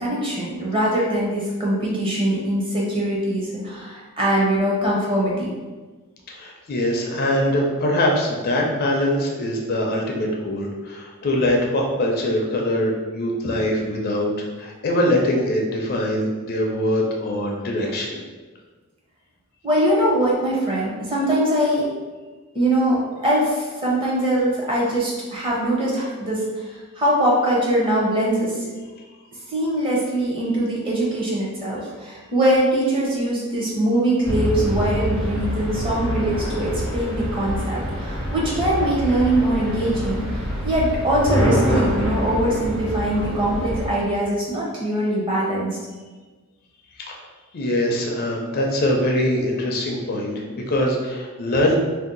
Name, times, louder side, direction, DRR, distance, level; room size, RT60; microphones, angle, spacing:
voice 1, 0.0-5.5 19.6-21.9 22.5-26.4 27.0-28.7 29.5-40.2 40.6-45.7, right 1 dB, 25° right, -4 dB, 0.7 m, -22 dB
voice 2, 6.3-18.2 47.0-47.2 47.5-51.8, left 1 dB, 45° left, 0 dB, 0.4 m, -23 dB
sound 1, 34.2-43.9, equal, 65° right, 1.3 m, -25 dB
2.6 x 2.1 x 3.7 m, 1.3 s
head